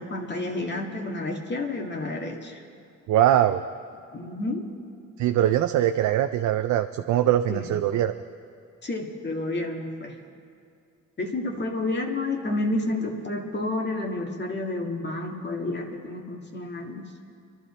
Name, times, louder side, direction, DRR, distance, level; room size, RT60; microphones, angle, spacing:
voice 1, 0.0-2.6 4.1-4.7 7.5-7.7 8.8-10.2 11.2-17.1, left 2 dB, 35° left, 1 dB, 1.8 m, -30 dB
voice 2, 3.1-3.6 5.2-8.1, right 12 dB, 70° right, 8 dB, 0.5 m, -22 dB
24.5 x 12.5 x 4.3 m, 2.4 s
cardioid pair, 90°, 30 cm